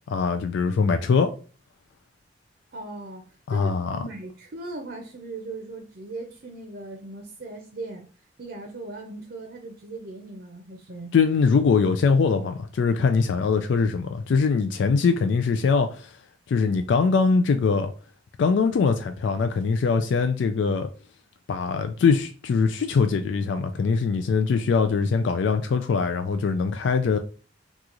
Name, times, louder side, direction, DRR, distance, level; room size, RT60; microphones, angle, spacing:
voice 1, 0.1-1.3 3.5-4.0 11.1-16.1 16.5-17.9 18.4-20.9 21.5-27.2, left 5 dB, 80° left, 0.3 m, -22 dB
voice 2, 2.7-3.2 3.5-8.0 8.4-11.1, right 2 dB, 60° right, 0.6 m, -38 dB
3.0 x 2.4 x 3.7 m
head